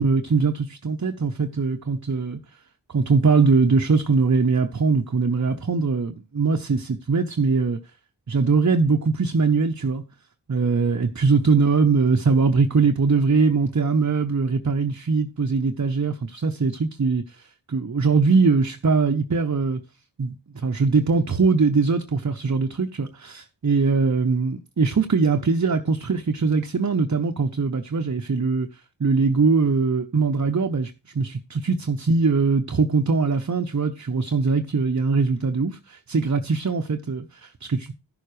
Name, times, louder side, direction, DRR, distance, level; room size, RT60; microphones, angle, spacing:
voice 1, 0.0-2.4 2.9-7.8 8.3-10.0 10.5-17.4 17.7-19.8 20.2-20.3 20.6-28.7 29.0-37.9, right 4 dB, 40° right, 0.9 m, -21 dB
14.5 x 6.8 x 3.2 m
cardioid pair, 45°, 43 cm